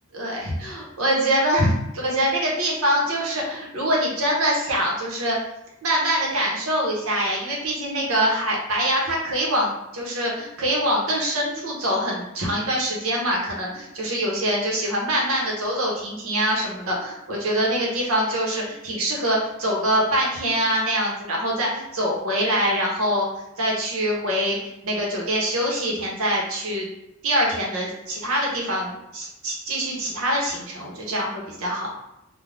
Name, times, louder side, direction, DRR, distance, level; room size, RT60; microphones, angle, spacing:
voice 1, 0.1-5.4 5.8-23.3 23.6-24.6 24.8-26.9 27.2-32.0, equal, 80° right, -2 dB, 0.9 m, -24 dB
2.5 x 2.2 x 3.3 m, 0.88 s
head